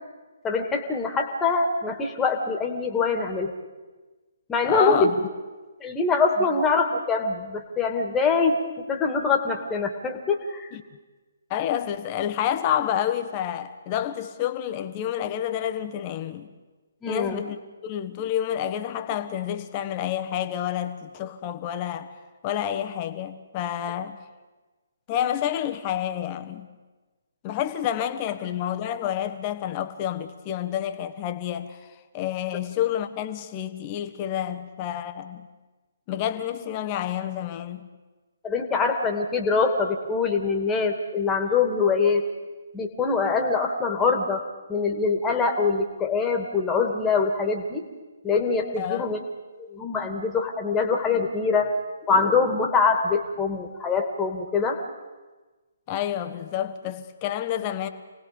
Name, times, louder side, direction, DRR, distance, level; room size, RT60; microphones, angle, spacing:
voice 1, 0.4-3.5 4.5-5.1 5.8-8.6 8.9-10.7 17.0-17.4 38.4-42.2 42.7-44.4 44.7-47.9 48.2-49.2 49.6-51.7 52.1-54.8, left 4 dB, 10° left, 2.2 m, -24 dB
voice 2, 4.7-5.1 6.4-6.5 10.7-10.8 11.5-16.5 17.1-22.1 22.4-24.2 25.1-26.7 27.4-31.9 32.1-35.5 36.1-37.9 48.8-49.1 55.9-57.9, left 10 dB, 30° left, 1.3 m, -29 dB
28.5 x 19.0 x 5.3 m
figure-of-eight pair, 135°, 0 cm